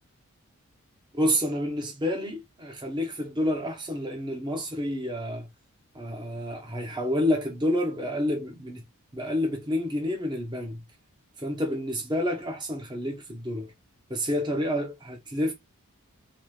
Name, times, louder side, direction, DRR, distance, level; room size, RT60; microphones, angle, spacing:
voice 1, 1.1-5.5 5.9-8.8 9.1-10.8 11.4-13.7 14.1-15.5, left 1 dB, 20° right, 0.9 m, -29 dB
4.3 x 2.5 x 3.3 m
head